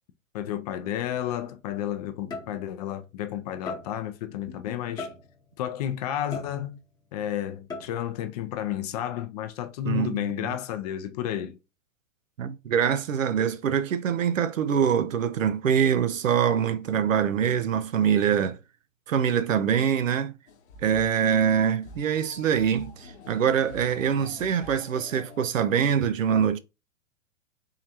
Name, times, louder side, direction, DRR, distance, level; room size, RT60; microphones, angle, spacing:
voice 1, 0.3-5.1 5.6-6.8 7.1-11.6, left 11 dB, 30° left, 0.4 m, -31 dB
sound 1, 2.3-2.9 3.7-4.2 5.0-5.6 6.3-7.0 7.7-8.2, left 3 dB, 10° left, 0.8 m, -39 dB
voice 2, 9.8-10.5 12.4-18.6 19.1-20.3 20.8-26.6, right 8 dB, 80° right, 0.6 m, -24 dB
sound 2, 20.5-25.5, left 2 dB, 55° left, 0.8 m, -46 dB
3.7 x 3.2 x 2.8 m
hypercardioid pair, 115°, 39 cm